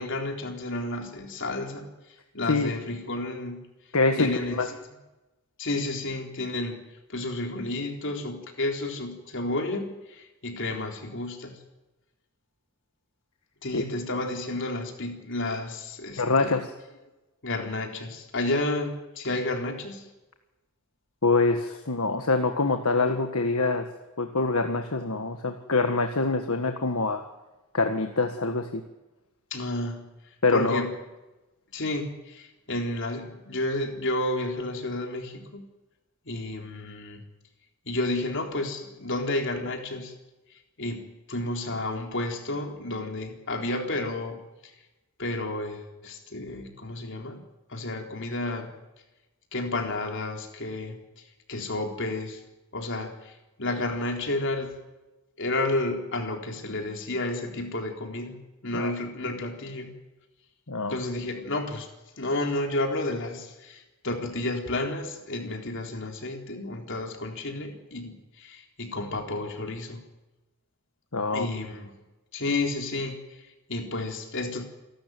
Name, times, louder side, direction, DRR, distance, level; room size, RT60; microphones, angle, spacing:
voice 1, 0.0-1.9 2.3-3.6 4.2-4.8 5.6-6.8 7.1-11.6 13.6-16.6 17.4-20.1 29.5-30.1 30.5-30.9 31.7-35.7 36.3-37.2 37.9-40.1 40.8-44.7 45.2-47.4 47.7-48.7 49.5-51.0 51.5-52.4 52.7-54.7 55.4-58.4 58.6-59.9 60.9-61.9 62.2-70.0 71.3-71.9 72.3-74.6, left 2 dB, 60° left, 3 dB, 4.0 m, -31 dB
voice 2, 3.9-4.7 13.7-13.8 16.2-16.7 21.2-23.9 24.2-27.2 27.7-28.8 30.4-30.8 58.7-58.9 60.7-60.9 71.1-71.5, left 3 dB, 75° left, 6 dB, 1.6 m, -25 dB
28.0 x 13.0 x 9.4 m, 1.1 s
head